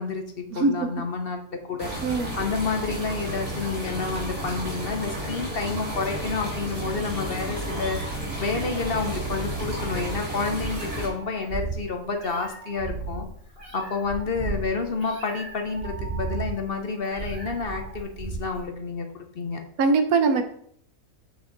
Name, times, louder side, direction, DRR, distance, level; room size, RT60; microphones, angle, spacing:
voice 1, 0.0-1.9 2.4-8.0 8.4-13.3 13.7-19.6, left 4 dB, 45° left, 4 dB, 0.9 m, -29 dB
voice 2, 0.5-0.9 2.0-2.3 19.8-20.4, right 4 dB, 80° right, 7 dB, 1.4 m, -21 dB
sound 1, 1.8-11.1, right 1 dB, 65° right, 2.8 m, -32 dB
Meow, 9.3-18.6, right 3 dB, 40° right, 3.2 m, -35 dB
7.2 x 6.3 x 4.0 m, 0.65 s
omnidirectional pair, 1.5 m